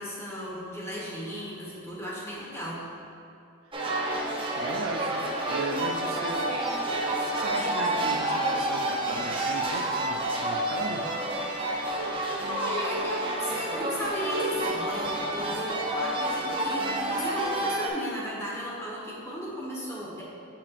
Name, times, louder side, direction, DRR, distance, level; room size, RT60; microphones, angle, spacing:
voice 1, 0.0-2.8 12.5-20.2, equal, 15° left, -5 dB, 1.2 m, -35 dB
sound 1, 3.7-17.9, right 1 dB, 25° right, 0.6 m, -29 dB
voice 2, 4.5-6.7 7.1-11.1, right 3 dB, 90° right, 5 dB, 0.4 m, -37 dB
7.4 x 5.6 x 2.5 m, 2.6 s
head